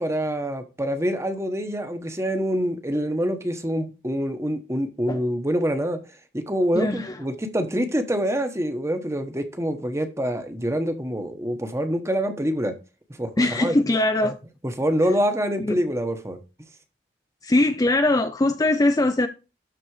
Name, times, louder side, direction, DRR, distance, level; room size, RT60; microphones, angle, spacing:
voice 1, 0.0-6.0 6.3-12.7 13.2-13.8 14.2-14.3 14.8-16.4, equal, 15° right, 1.1 m, -26 dB
voice 2, 6.7-7.2 13.4-14.3 15.6-15.8 17.4-19.3, left 2 dB, 20° left, 0.5 m, -21 dB
12.0 x 4.2 x 4.9 m
head